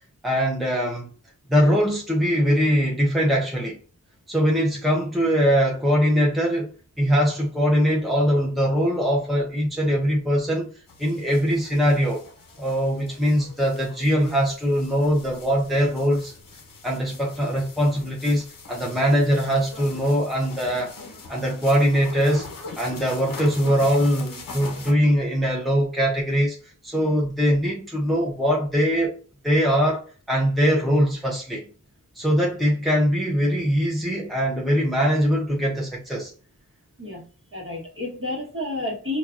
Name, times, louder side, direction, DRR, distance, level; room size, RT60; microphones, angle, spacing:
voice 1, 0.2-1.1 1.5-3.8 4.3-6.7 7.0-10.7 11.0-12.2 12.6-16.3 16.8-20.9 21.3-22.5 22.8-26.6 26.8-29.1 29.4-31.6 32.2-36.3, equal, ahead, 0.8 m, -22 dB
sound 1, 10.9-24.9, left 3 dB, 80° left, 0.8 m, -42 dB
voice 2, 37.5-39.2, left 2 dB, 40° right, 1.4 m, -30 dB
4.4 x 2.4 x 2.5 m
wide cardioid pair, 70°, 33 cm